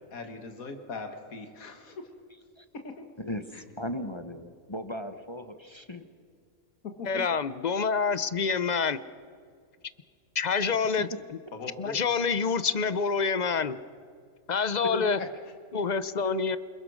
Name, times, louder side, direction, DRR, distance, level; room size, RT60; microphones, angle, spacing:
voice 1, 0.1-2.1 2.8-3.1 3.5-3.6 7.0-7.3 11.5-12.0 15.2-15.3, left 4 dB, 85° left, 5 dB, 2.1 m, -40 dB
voice 2, 3.2-6.1 11.0-11.1 14.8-15.1 16.2-16.4, left 1 dB, 20° left, 8 dB, 1.0 m, -36 dB
voice 3, 7.1-9.0 10.3-11.1 11.8-13.8 14.5-15.2 15.7-16.6, left 5 dB, 40° left, 14 dB, 0.7 m, -27 dB
28.5 x 21.0 x 6.4 m, 2.2 s
omnidirectional pair, 1.4 m